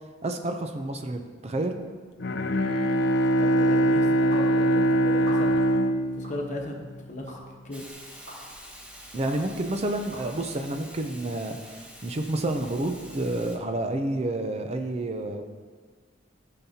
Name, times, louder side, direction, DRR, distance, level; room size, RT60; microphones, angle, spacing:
voice 1, 0.2-1.8 9.1-15.4, right 1 dB, 35° right, 5 dB, 0.5 m, -29 dB
Bowed string instrument, 2.2-7.1, right 1 dB, 60° left, 0.6 m, -23 dB
voice 2, 3.4-5.6 6.1-6.7 7.1-7.4 7.6-7.9, left 1 dB, 40° left, 1 dB, 1.1 m, -37 dB
sound 1, 4.3-4.5 5.2-5.7 6.2-6.4 7.3-7.4 8.3-8.4 9.2-9.4 10.1-10.2, right 1 dB, 60° right, 2.6 m, -42 dB
Hiss, 7.7-13.6, equal, 5° right, 1.0 m, -46 dB
14.0 x 5.8 x 2.8 m, 1.5 s
head